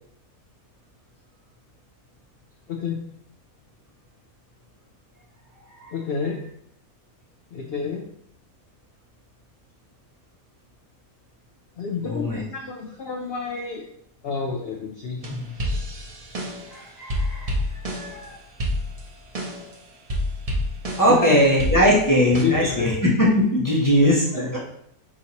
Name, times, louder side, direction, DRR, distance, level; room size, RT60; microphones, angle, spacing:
voice 1, 5.9-6.4 7.5-8.0 11.8-13.8 14.2-15.2 21.1-21.4 22.3-22.9 24.3-24.6, left 6 dB, 85° left, 1 dB, 0.5 m, -29 dB
voice 2, 12.0-12.4 16.7-18.4 21.0-24.6, equal, 30° left, -5 dB, 0.3 m, -20 dB
sound 1, 15.2-16.8 17.1-18.2 18.6-19.7 20.1-21.2 21.6-22.4, left 1 dB, 40° right, 0.5 m, -28 dB
5.0 x 2.8 x 2.8 m, 0.70 s
omnidirectional pair, 1.6 m